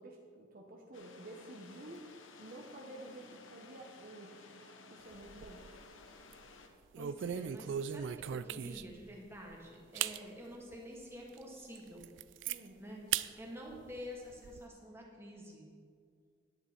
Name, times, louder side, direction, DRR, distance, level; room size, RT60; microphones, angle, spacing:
voice 1, 0.0-5.7 12.5-12.8, right 1 dB, 45° right, 1 dB, 0.9 m, -51 dB
sound 1, 0.9-6.7, left 4 dB, 85° left, 1.0 m, -56 dB
sound 2, 5.1-5.8 6.2-6.4 6.9-9.0 9.5-9.6 10.0-10.2 10.7-10.8 11.3-11.4 11.8-12.6 13.1-13.3 13.7-14.6, right 9 dB, 70° right, 0.3 m, -38 dB
voice 2, 6.9-12.0 12.8-15.7, equal, 15° right, -2 dB, 1.8 m, -49 dB
10.5 x 9.5 x 4.5 m, 2.1 s
head